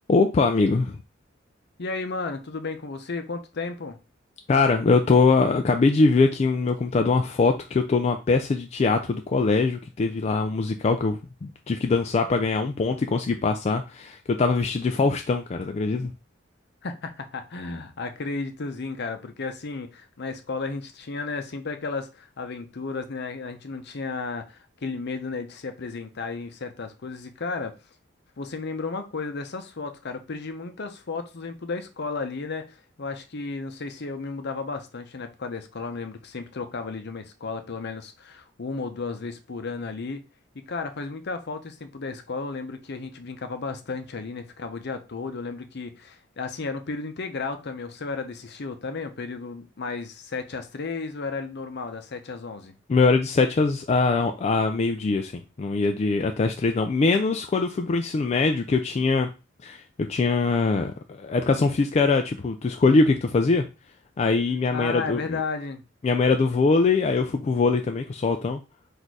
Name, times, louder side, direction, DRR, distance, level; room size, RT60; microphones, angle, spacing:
voice 1, 0.1-1.0 4.5-16.1 52.9-59.3 59.6-59.8 60.1-63.7 64.2-65.4 66.0-68.6, left 4 dB, 35° left, 0.3 m, -22 dB
voice 2, 1.8-4.0 16.8-27.7 28.4-40.2 40.7-52.8 64.7-65.8, left 4 dB, 60° left, 0.7 m, -33 dB
4.2 x 2.6 x 4.6 m
head